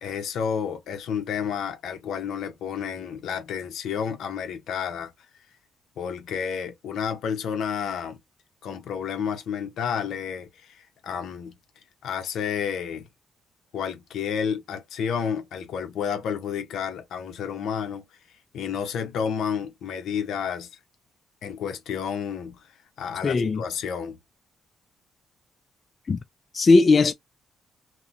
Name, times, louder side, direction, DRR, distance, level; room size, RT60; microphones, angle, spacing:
voice 1, 0.0-5.1 6.0-8.2 8.6-11.5 12.0-13.1 13.7-18.0 18.5-20.7 21.4-22.6 23.0-24.2, left 7 dB, 75° left, 0.8 m, -30 dB
voice 2, 23.2-23.6 26.1-26.2 26.5-27.1, left 3 dB, 40° left, 0.3 m, -18 dB
2.9 x 2.2 x 2.5 m
cardioid pair, 90°, 0 cm